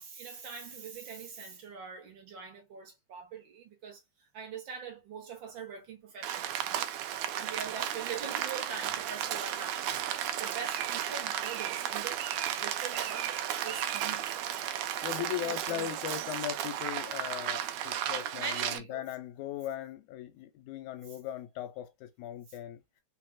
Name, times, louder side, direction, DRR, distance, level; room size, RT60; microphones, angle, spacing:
voice 1, 0.0-10.0 10.4-12.3 12.6-14.4 15.1-15.9 18.4-19.0, right 5 dB, 50° right, 1.6 m, -43 dB
Rain, 6.2-18.8, right 11 dB, 75° right, 1.8 m, -34 dB
voice 2, 15.0-22.8, left 11 dB, 90° left, 2.0 m, -38 dB
4.7 x 3.3 x 2.3 m
omnidirectional pair, 3.4 m